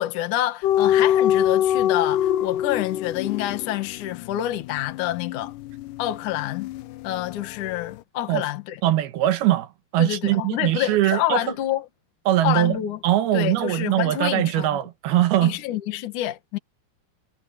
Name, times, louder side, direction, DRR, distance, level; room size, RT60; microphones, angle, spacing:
voice 1, 0.0-5.5 6.0-6.7 7.0-8.8 10.0-11.8 12.4-13.0 13.3-14.8 15.4-16.6, left 13 dB, 60° left, 2.7 m, -27 dB
sound 1, 0.6-7.4 7.7-7.9, left 11 dB, 80° left, 1.9 m, -24 dB
voice 2, 8.8-11.5 12.3-15.6, right 14 dB, 80° right, 2.9 m, -22 dB
omnidirectional pair, 4.6 m